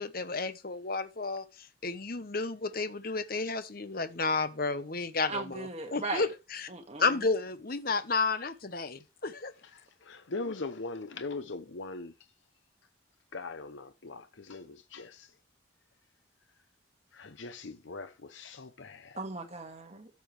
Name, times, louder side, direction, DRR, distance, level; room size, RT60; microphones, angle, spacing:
voice 1, 0.0-1.4 1.8-6.7 7.0-9.5, left 4 dB, 50° left, 1.0 m, -32 dB
voice 2, 5.3-6.2 6.7-7.1 19.2-20.1, right 3 dB, 35° right, 1.9 m, -37 dB
voice 3, 9.7-12.1 13.3-15.3 17.1-19.2, left 3 dB, 70° left, 0.8 m, -41 dB
14.0 x 7.0 x 3.3 m
head